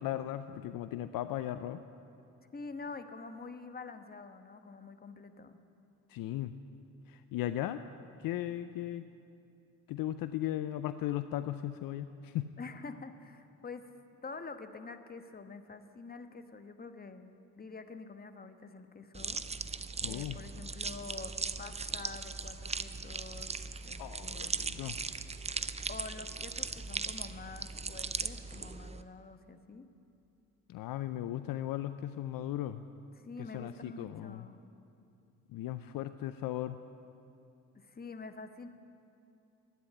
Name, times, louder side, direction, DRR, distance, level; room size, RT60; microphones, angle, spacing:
voice 1, 0.0-1.8 6.1-6.5 7.1-7.8 8.2-9.0 9.9-12.5 20.0-20.3 24.0-25.0 30.7-32.8 33.5-34.5 35.5-36.8, left 13 dB, 60° left, 11 dB, 0.6 m, -37 dB
voice 2, 2.5-5.6 12.6-13.9 14.2-19.4 20.0-23.5 23.8-24.6 25.9-29.9 33.1-34.6 37.7-38.7, left 4 dB, 25° left, 8 dB, 1.2 m, -47 dB
sound 1, 19.1-29.0, right 4 dB, 15° right, 0.6 m, -39 dB
12.0 x 9.6 x 9.9 m, 2.6 s
hypercardioid pair, 60°, 38 cm